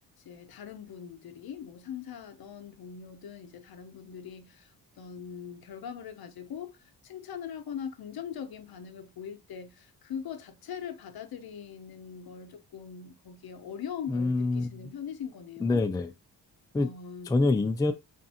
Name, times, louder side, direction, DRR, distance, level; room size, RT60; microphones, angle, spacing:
voice 1, 0.2-15.8 16.8-17.4, left 8 dB, 65° left, 0.8 m, -41 dB
voice 2, 14.1-14.8 15.6-16.1 16.7-16.9 17.3-17.9, left 3 dB, 10° left, 0.4 m, -26 dB
3.4 x 2.6 x 4.2 m
cardioid pair, 100°, 40 cm